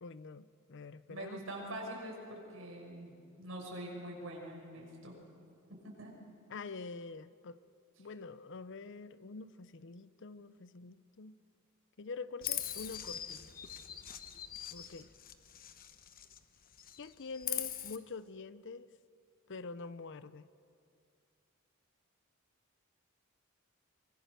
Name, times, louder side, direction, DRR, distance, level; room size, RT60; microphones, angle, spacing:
voice 1, 0.0-1.4 6.5-7.6 8.0-11.4 12.0-13.4 14.7-15.1 17.0-18.9 19.5-20.4, left 4 dB, 60° left, 15 dB, 0.7 m, -46 dB
voice 2, 1.1-5.1 5.7-6.1, right 1 dB, 75° right, -1 dB, 6.3 m, -44 dB
Chirp tweet, 12.4-16.4 16.7-18.0, left 10 dB, 45° left, 1.0 m, -42 dB
24.0 x 23.5 x 6.9 m, 2.5 s
head